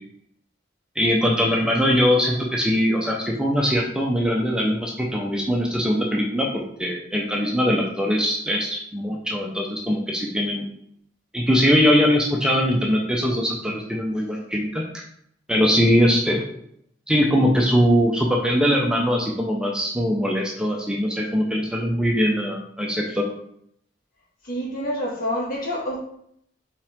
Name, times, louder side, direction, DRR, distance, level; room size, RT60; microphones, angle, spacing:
voice 1, 1.0-10.7 11.3-14.8 15.5-16.5 17.1-23.3, equal, 5° right, -1 dB, 0.7 m, -21 dB
voice 2, 24.4-26.0, equal, 50° left, -3 dB, 2.0 m, -27 dB
5.5 x 4.9 x 3.6 m, 0.70 s
head